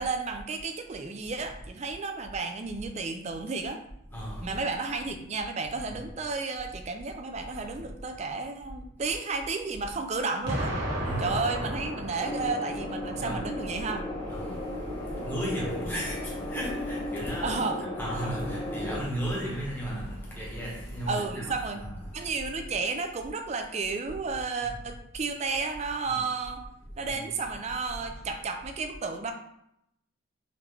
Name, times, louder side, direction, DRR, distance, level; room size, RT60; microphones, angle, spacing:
voice 1, 0.0-3.8 4.4-10.8 11.2-14.0 15.9-16.0 17.4-17.8 21.1-21.8 22.1-26.6 27.0-29.3, right 4 dB, 35° right, 5 dB, 0.4 m, -32 dB
voice 2, 4.1-4.6 5.9-6.0 11.0-11.4 13.2-13.5 14.3-17.6 17.9-22.3 24.6-24.7 26.1-26.2 27.0-27.3, equal, 10° left, -5 dB, 1.2 m, -35 dB
Explosion, 10.5-13.4, equal, 70° right, 1.3 m, -33 dB
sound 1, 12.2-19.0, left 1 dB, 25° left, 1.3 m, -35 dB
3.8 x 3.2 x 3.2 m, 0.77 s
head